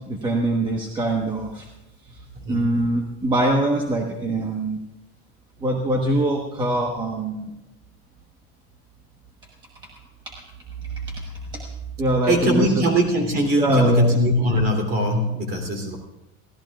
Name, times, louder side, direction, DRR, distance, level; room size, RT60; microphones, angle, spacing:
voice 1, 0.1-1.7 2.5-4.8 5.6-7.5 11.5-11.6 12.0-12.8 13.6-14.2, right 1 dB, 15° right, 0 dB, 1.1 m, -23 dB
voice 2, 12.2-16.0, equal, 30° right, 3 dB, 3.0 m, -21 dB
23.5 x 16.5 x 2.4 m, 0.97 s
cardioid pair, 180°, 32 cm